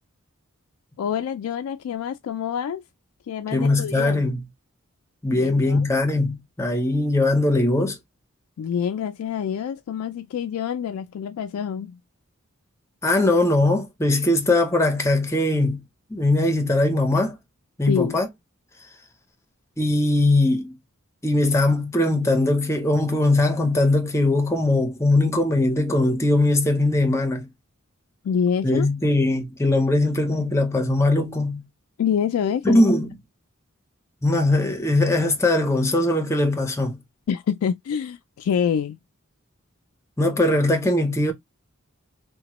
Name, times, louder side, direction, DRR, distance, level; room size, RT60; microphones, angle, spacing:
voice 1, 1.0-2.8 3.3-4.2 5.3-5.9 8.6-12.0 17.9-18.2 28.2-28.9 32.0-32.8 37.3-39.0, left 7 dB, 90° left, 0.3 m, -26 dB
voice 2, 3.5-4.4 5.2-8.0 13.0-15.8 16.1-17.4 17.8-18.3 19.8-20.8 21.2-27.5 28.6-31.6 32.6-33.2 34.2-37.0 40.2-41.3, left 2 dB, 15° left, 0.6 m, -20 dB
2.9 x 2.1 x 2.9 m
head